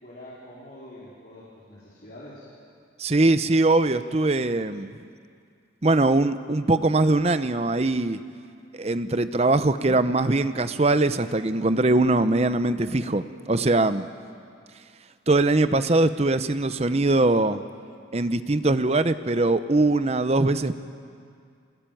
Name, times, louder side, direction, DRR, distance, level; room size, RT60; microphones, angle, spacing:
voice 1, 0.0-2.5, left 1 dB, 50° left, -8 dB, 4.3 m, -45 dB
voice 2, 3.0-4.9 5.8-8.2 8.8-14.1 15.3-17.6 18.1-20.8, right 2 dB, 35° right, 12 dB, 0.7 m, -22 dB
23.0 x 20.0 x 9.2 m, 2.3 s
head